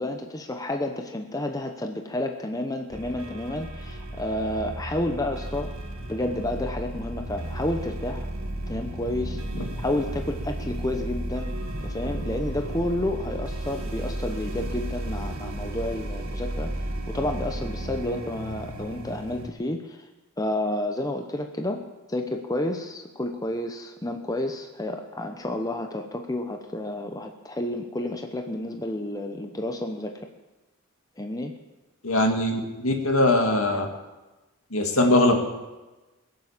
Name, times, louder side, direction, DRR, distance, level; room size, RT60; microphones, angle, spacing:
voice 1, 0.0-5.7 6.1-8.3 8.7-11.6 11.8-16.7 17.1-20.1 20.4-30.2 31.2-31.5, left 1 dB, 15° left, 4 dB, 0.9 m, -30 dB
sound 1, 2.9-19.5, right 1 dB, 65° right, 1.6 m, -33 dB
voice 2, 32.0-33.9 34.7-35.5, left 1 dB, 70° left, 3 dB, 2.3 m, -21 dB
22.0 x 7.9 x 7.4 m, 1.1 s
head